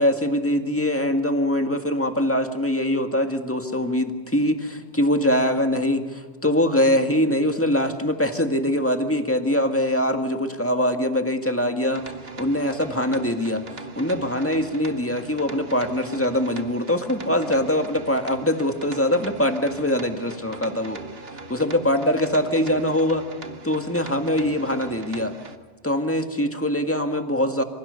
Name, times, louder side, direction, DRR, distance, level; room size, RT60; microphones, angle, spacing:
voice 1, 0.0-12.1 12.4-21.0 21.5-23.2 23.6-25.3 25.8-27.6, left 1 dB, 10° left, 6 dB, 1.8 m, -23 dB
sound 1, 11.8-25.6, right 3 dB, 65° right, 1.6 m, -40 dB
27.5 x 25.5 x 6.9 m, 1.4 s
omnidirectional pair, 1.1 m